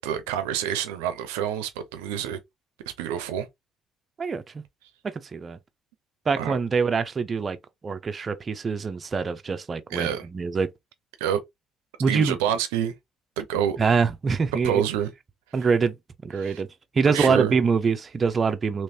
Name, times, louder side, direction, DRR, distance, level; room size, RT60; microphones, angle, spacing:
voice 1, 0.0-2.4 3.0-3.5 6.4-6.5 9.9-10.3 11.2-11.4 12.1-12.9 13.4-13.8 14.5-15.1 15.6-15.7 16.4-16.6 17.1-17.5, right 9 dB, 90° right, 0.6 m, -27 dB
voice 2, 4.2-4.6 5.3-5.6 6.3-7.6 7.8-10.7 12.0-12.4 13.8-14.8 15.5-15.9 16.2-16.7 16.9-18.8, right 5 dB, 40° right, 0.6 m, -24 dB
3.2 x 3.1 x 2.7 m
supercardioid pair, 65°, 0 cm